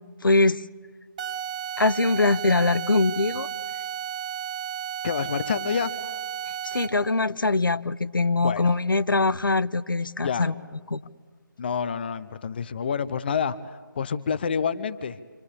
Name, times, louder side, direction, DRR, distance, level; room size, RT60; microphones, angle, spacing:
voice 1, 0.2-0.6 1.8-3.5 6.7-10.5 10.9-11.0, left 3 dB, 80° left, 15 dB, 1.0 m, -22 dB
sound 1, 1.2-7.1, right 9 dB, 20° right, 1.3 m, -33 dB
voice 2, 5.0-5.9 8.4-8.7 10.2-10.5 11.6-15.2, left 6 dB, 30° left, 15 dB, 0.8 m, -28 dB
27.0 x 25.0 x 8.5 m, 1.5 s
figure-of-eight pair, 160°, 11 cm